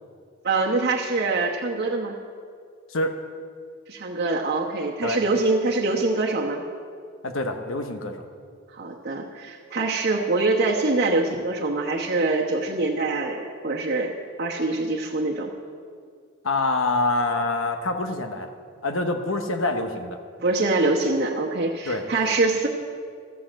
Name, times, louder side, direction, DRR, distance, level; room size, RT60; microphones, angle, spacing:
voice 1, 0.4-2.1 3.9-6.6 8.7-14.1 14.4-15.5 20.4-22.7, right 3 dB, 55° right, -2 dB, 1.1 m, -24 dB
voice 2, 7.2-8.3 16.4-18.5 18.8-20.2 21.9-22.0, left 2 dB, 75° left, 6 dB, 1.0 m, -26 dB
13.5 x 7.7 x 7.4 m, 2.1 s
head